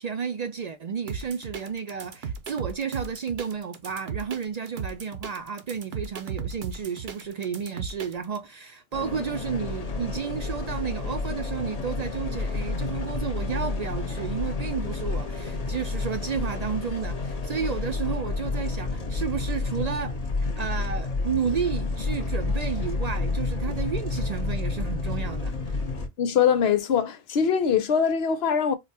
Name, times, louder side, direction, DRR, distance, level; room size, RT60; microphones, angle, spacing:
voice 1, 0.0-25.8, right 6 dB, 55° right, 0.5 m, -32 dB
sound 1, 1.1-8.4, right 6 dB, 75° right, 1.0 m, -36 dB
sound 2, 8.9-26.1, left 3 dB, 40° left, 0.8 m, -30 dB
voice 2, 26.2-28.8, left 7 dB, 85° left, 0.9 m, -22 dB
4.9 x 2.2 x 2.6 m
omnidirectional pair, 1.0 m